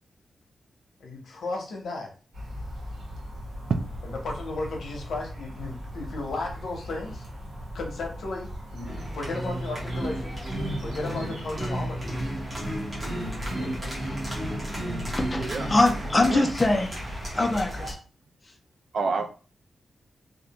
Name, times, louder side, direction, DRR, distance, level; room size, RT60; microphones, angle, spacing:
voice 1, 1.0-2.1 4.0-7.3 7.7-10.3 10.8-12.1 13.4-14.2, left 3 dB, 85° left, 1 dB, 0.7 m, -35 dB
sound 1, 2.3-17.9, equal, 85° right, 1.0 m, -38 dB
sound 2, 8.8-17.9, right 1 dB, 20° right, 0.8 m, -33 dB
voice 2, 15.3-17.0 17.4-18.0, left 2 dB, 25° left, 3 dB, 0.4 m, -23 dB
voice 3, 18.9-19.3, right 4 dB, 60° right, 6 dB, 0.3 m, -27 dB
2.4 x 2.1 x 2.8 m, 0.38 s
wide cardioid pair, 150°, 0 cm